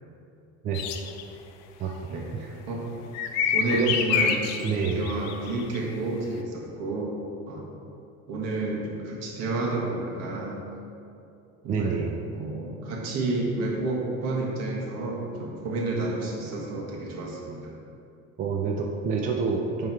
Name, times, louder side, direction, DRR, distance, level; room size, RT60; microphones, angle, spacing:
sound 1, 0.7-1.2 3.1-5.8, left 7 dB, 65° left, 0.5 m, -27 dB
voice 1, 2.1-2.8 3.5-4.4 4.9-7.2 7.5-7.7 8.3-10.6 11.6-12.0 12.3-17.7, right 2 dB, 65° right, -2 dB, 1.5 m, -30 dB
voice 2, 4.6-5.1 11.7-12.1 18.4-19.9, right 5 dB, 30° right, 1 dB, 0.4 m, -27 dB
9.1 x 3.5 x 4.5 m, 2.6 s
cardioid pair, 170°, 29 cm